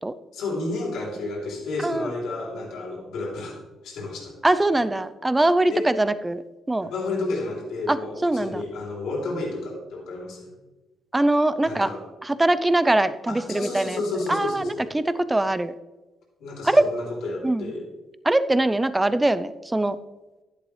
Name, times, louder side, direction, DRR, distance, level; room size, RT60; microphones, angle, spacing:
voice 1, 0.3-3.5 3.8-4.4 5.7-5.9 6.8-10.5 11.6-12.0 13.3-14.9 16.4-17.9, left 2 dB, 80° left, -1 dB, 3.1 m, -31 dB
voice 2, 4.4-6.4 6.7-6.9 7.9-8.0 8.2-8.6 11.1-11.9 12.2-14.0 14.3-15.7 16.6-16.9 17.4-17.7 18.2-20.0, right 2 dB, 15° right, 13 dB, 0.5 m, -22 dB
11.0 x 10.5 x 3.2 m, 1.1 s
cardioid pair, 90°, 0 cm